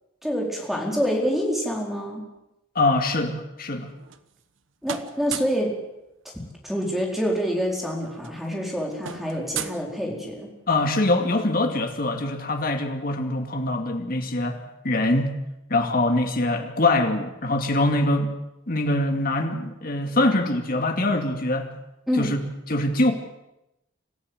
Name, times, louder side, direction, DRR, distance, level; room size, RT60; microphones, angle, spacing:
voice 1, 0.2-2.3 4.8-5.8 6.6-10.5 22.1-22.3, equal, ahead, -1 dB, 4.5 m, -26 dB
voice 2, 2.7-3.9 10.7-14.6 14.8-15.3 15.7-18.3 18.7-21.7 22.2-22.4 22.7-23.1, left 2 dB, 45° left, 5 dB, 2.5 m, -23 dB
sound 1, 3.8-4.6 4.8-5.7 7.0-7.1 7.4-7.6 7.9-10.5, right 8 dB, 75° right, 1.2 m, -36 dB
25.5 x 14.5 x 8.1 m, 0.90 s
head